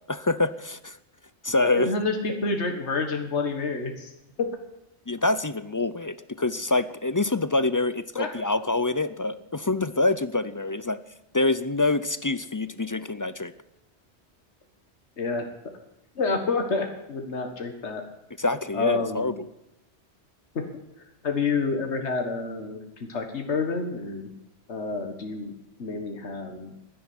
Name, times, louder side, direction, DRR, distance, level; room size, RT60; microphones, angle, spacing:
voice 1, 0.1-1.0 1.4-1.9 5.1-11.0 11.3-13.5 18.4-19.3, left 2 dB, 30° left, 14 dB, 0.3 m, -26 dB
voice 2, 1.6-4.1 4.4-4.5 8.2-8.3 15.2-15.5 16.2-18.0 18.7-19.3 21.0-24.3 24.7-26.7, left 3 dB, 80° left, 4 dB, 1.9 m, -29 dB
11.0 x 10.5 x 9.6 m, 0.90 s
omnidirectional pair, 1.1 m